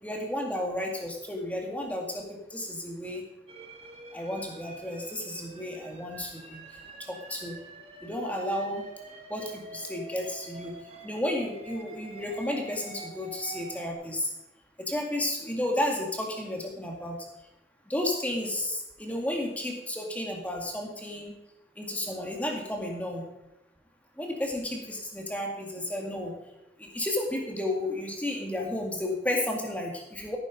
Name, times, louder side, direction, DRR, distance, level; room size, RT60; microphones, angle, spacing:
voice 1, 0.0-3.2 4.1-6.6 7.0-7.6 8.0-8.8 9.3-10.7 11.0-14.3 14.8-17.2 17.9-21.3 21.8-23.2 24.2-26.3 26.8-30.4, left 1 dB, 10° left, 1 dB, 2.0 m, -32 dB
sound 1, 3.5-13.9, right 2 dB, 35° right, 1.7 m, -46 dB
15.5 x 9.5 x 5.2 m, 0.90 s
head